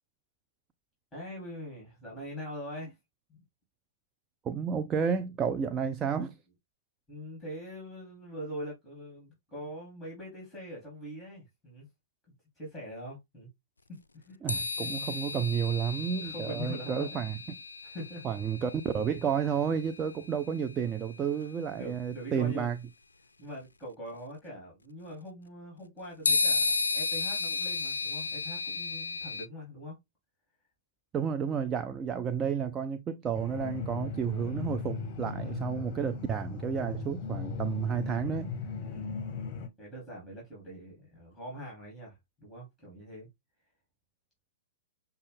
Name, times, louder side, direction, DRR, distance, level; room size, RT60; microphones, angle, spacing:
voice 1, 1.1-3.0 3.3-3.4 7.1-11.9 12.5-13.5 13.9-14.4 14.8-15.2 16.0-17.2 17.8-18.3 21.2-22.7 23.4-30.0 35.4-35.7 38.8-39.2 39.8-43.3, equal, 5° left, 2.9 m, -43 dB
voice 2, 4.4-6.4 14.4-17.4 18.2-22.8 31.1-38.5, right 7 dB, 25° right, 0.4 m, -31 dB
sound 1, 14.5-20.1 21.4-21.5 26.2-29.5, left 4 dB, 85° left, 0.3 m, -33 dB
sound 2, 33.3-39.7, left 5 dB, 40° left, 0.8 m, -37 dB
6.4 x 2.3 x 3.3 m
figure-of-eight pair, 110°, 0 cm